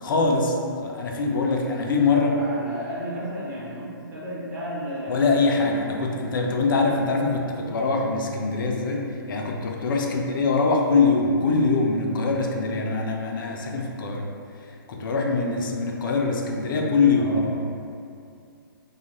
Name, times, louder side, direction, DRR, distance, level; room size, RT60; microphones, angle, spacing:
voice 1, 0.0-2.4 5.1-14.3 14.9-17.5, left 3 dB, 60° left, 1 dB, 0.4 m, -23 dB
voice 2, 2.1-6.3 10.0-10.2 15.3-15.8 17.2-17.5, equal, 55° right, -6 dB, 0.9 m, -34 dB
2.5 x 2.4 x 2.9 m, 2.4 s
hypercardioid pair, 150°, 12 cm